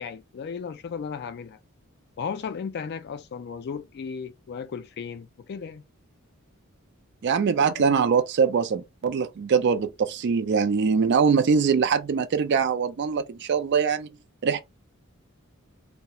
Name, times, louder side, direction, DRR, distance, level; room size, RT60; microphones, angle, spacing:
voice 1, 0.0-1.6 2.2-5.8, left 6 dB, 50° left, 0.3 m, -35 dB
voice 2, 7.2-14.1 14.4-14.6, right 6 dB, 55° right, 0.4 m, -23 dB
2.3 x 2.1 x 2.8 m
head